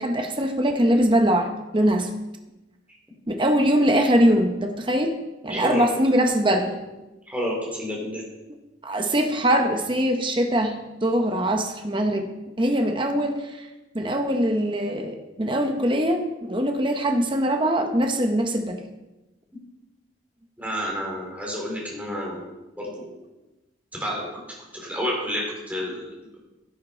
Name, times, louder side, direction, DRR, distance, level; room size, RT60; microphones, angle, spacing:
voice 1, 0.0-2.1 3.3-5.2 5.4-6.8 8.8-12.3 12.6-13.7 13.9-18.8, equal, 25° right, 4 dB, 0.9 m, -22 dB
voice 2, 5.5-5.9 7.3-8.2 20.6-22.4 22.8-23.1 23.9-24.3 24.7-26.0, equal, 10° right, -3 dB, 3.6 m, -29 dB
11.0 x 10.5 x 4.5 m, 1.0 s
head